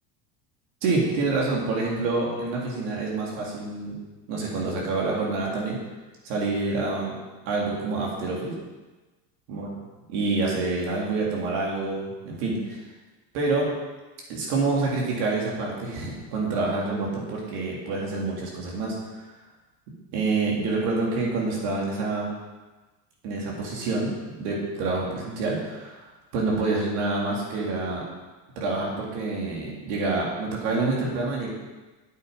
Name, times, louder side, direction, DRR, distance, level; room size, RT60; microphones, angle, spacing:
voice 1, 0.8-4.0 4.3-5.8 6.2-7.2 7.5-8.5 9.5-9.7 10.1-12.8 13.3-13.7 14.3-19.3 20.1-22.3 23.2-24.1 24.4-28.0 28.6-31.5, right 3 dB, 65° right, -3 dB, 3.5 m, -27 dB
8.9 x 8.3 x 5.2 m, 1.2 s
cardioid pair, 155°, 38 cm